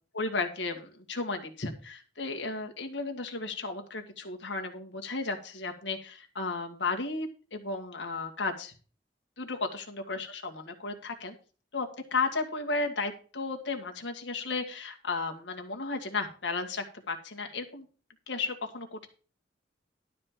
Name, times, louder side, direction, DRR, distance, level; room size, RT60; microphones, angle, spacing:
voice 1, 0.1-8.7 9.4-11.3 11.7-17.9 18.3-19.1, left 3 dB, 80° left, 4 dB, 1.8 m, -34 dB
12.0 x 4.3 x 7.4 m, 0.37 s
head